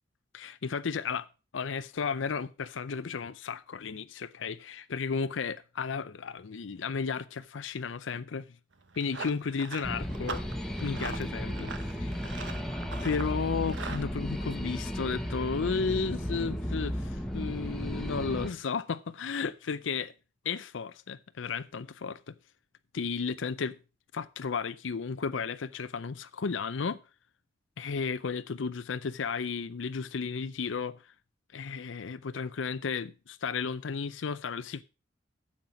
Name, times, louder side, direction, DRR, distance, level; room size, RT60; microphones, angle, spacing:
voice 1, 0.3-1.3 1.5-8.5 9.0-10.4 10.8-11.7 12.0-12.1 13.0-20.1 20.4-22.3 22.9-23.8 24.1-27.0 27.8-31.0 31.5-34.8, left 5 dB, 85° left, 0.5 m, -33 dB
Run, 8.7-14.1, right 4 dB, 75° right, 1.1 m, -42 dB
sound 1, 9.8-18.5, equal, 5° left, 1.4 m, -34 dB
9.1 x 7.3 x 6.0 m
head